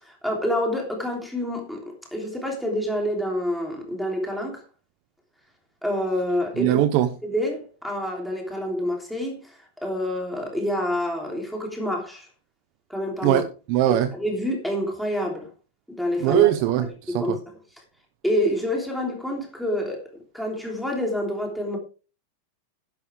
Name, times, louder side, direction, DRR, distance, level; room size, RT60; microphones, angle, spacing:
voice 1, 0.2-1.8 2.1-4.6 5.8-6.8 7.2-9.5 9.8-12.3 12.9-13.4 14.1-15.5 15.9-16.4 17.1-17.4 18.2-20.0 20.3-21.8, left 1 dB, ahead, 3.2 m, -27 dB
voice 2, 6.6-7.1 13.2-14.1 16.2-17.4, right 13 dB, 40° right, 0.9 m, -21 dB
11.5 x 11.0 x 3.5 m
supercardioid pair, 170°, 0 cm